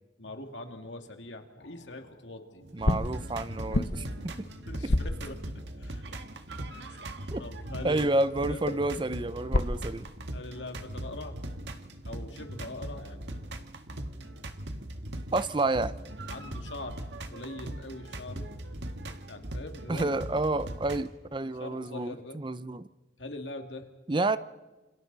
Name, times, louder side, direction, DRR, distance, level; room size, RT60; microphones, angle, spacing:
voice 1, 0.2-2.6 4.7-6.0 6.7-7.0 7.4-8.1 8.5-8.6 10.3-11.4 12.1-13.5 15.6-15.7 16.3-17.0 17.3-18.5 19.3-20.2 21.6-22.4 23.2-23.9, left 2 dB, 85° left, 2.4 m, -42 dB
sound 1, 1.6-2.2 2.8-6.0 8.7-10.2, left 1 dB, 65° left, 1.0 m, -32 dB
sound 2, 2.6-21.1, right 1 dB, 75° right, 1.7 m, -40 dB
voice 2, 2.7-4.5 7.3-7.4 7.8-10.1 15.3-15.9 19.9-22.9 24.1-24.4, right 2 dB, 25° right, 0.6 m, -29 dB
28.5 x 28.0 x 4.1 m
head